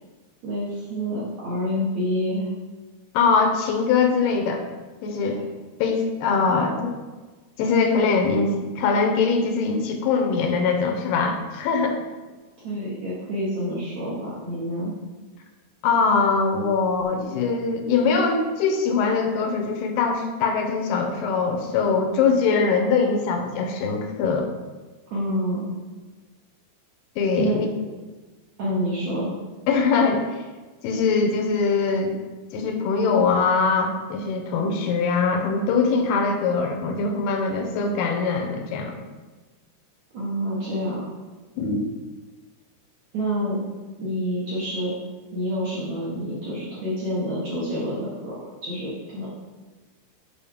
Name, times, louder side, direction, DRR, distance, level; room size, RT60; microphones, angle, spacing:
voice 1, 0.4-2.5 5.2-5.4 12.6-14.9 25.1-25.7 27.4-27.6 28.6-29.3 40.1-41.0 43.1-43.6 44.0-44.9 45.3-49.3, equal, 65° right, -8 dB, 1.9 m, -28 dB
voice 2, 3.1-4.6 5.0-5.4 5.8-7.0 7.6-12.0 15.8-24.5 27.2-27.7 29.7-30.3 30.8-32.1 32.5-39.0 41.6-41.9, left 4 dB, 85° left, 4 dB, 2.6 m, -22 dB
6.9 x 4.6 x 3.5 m, 1.3 s
omnidirectional pair, 4.7 m